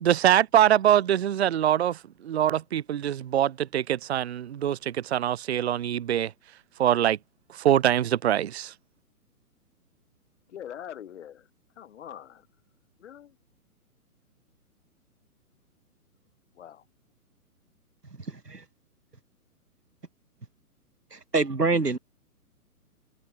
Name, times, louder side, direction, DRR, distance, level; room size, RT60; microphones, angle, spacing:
voice 1, 0.0-6.3 6.8-7.2 7.6-8.7, right 11 dB, 45° right, 0.6 m, -23 dB
voice 2, 10.5-11.5 11.8-12.5 13.0-13.4 16.5-16.8, left 10 dB, 50° left, 5.8 m, -43 dB
voice 3, 21.1-22.0, right 3 dB, 90° right, 2.1 m, -25 dB
figure-of-eight pair, 130°, 46 cm